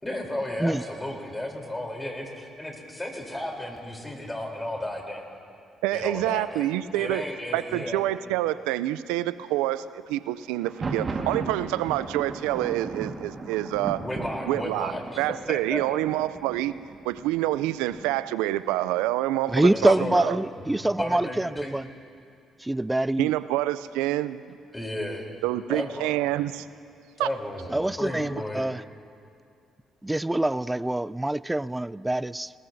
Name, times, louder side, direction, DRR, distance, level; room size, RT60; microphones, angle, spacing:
voice 1, 0.0-5.3 5.9-8.0 14.0-15.8 19.7-20.2 20.6-21.7 24.7-25.2 25.7-26.4 27.2-28.7, left 1 dB, 15° left, 0 dB, 3.5 m, -34 dB
voice 2, 5.8-7.2 7.5-14.0 14.5-14.9 15.2-16.7 17.0-20.4 23.2-24.6 25.4-26.7 27.2-27.3, right 15 dB, 85° right, 15 dB, 0.4 m, -27 dB
Thunder, 10.5-18.3, right 3 dB, 45° right, 1.6 m, -37 dB
voice 3, 19.5-21.8 22.6-23.3 27.7-28.8 30.0-32.5, right 1 dB, 10° right, 20 dB, 0.3 m, -25 dB
20.5 x 20.0 x 2.7 m, 2.3 s
hypercardioid pair, 55°, 0 cm